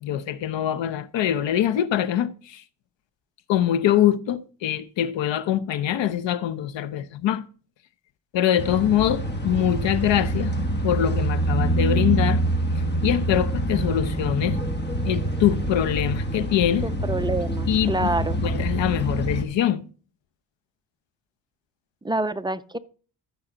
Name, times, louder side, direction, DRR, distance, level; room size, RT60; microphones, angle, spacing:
voice 1, 0.0-2.6 3.5-7.4 8.3-10.5 10.8-12.4 13.0-14.6 15.1-16.9 17.7-17.9 18.4-19.8, left 11 dB, 75° left, 0.9 m, -23 dB
sound 1, 8.6-19.4, right 1 dB, 25° left, 1.6 m, -25 dB
voice 2, 16.8-18.4 22.0-22.8, right 2 dB, 10° right, 0.4 m, -27 dB
14.0 x 5.7 x 3.9 m
cardioid pair, 115°, 45 cm